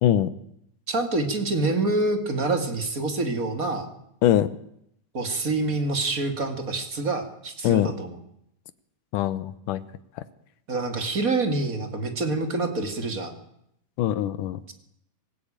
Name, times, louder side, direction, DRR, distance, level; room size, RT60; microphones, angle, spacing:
voice 1, 0.9-3.9 5.1-8.2 10.7-13.3, right 3 dB, 25° right, 6 dB, 2.5 m, -26 dB
voice 2, 9.1-9.8 14.0-14.6, left 11 dB, 75° left, 14 dB, 2.5 m, -22 dB
25.5 x 16.0 x 8.9 m, 0.77 s
omnidirectional pair, 3.9 m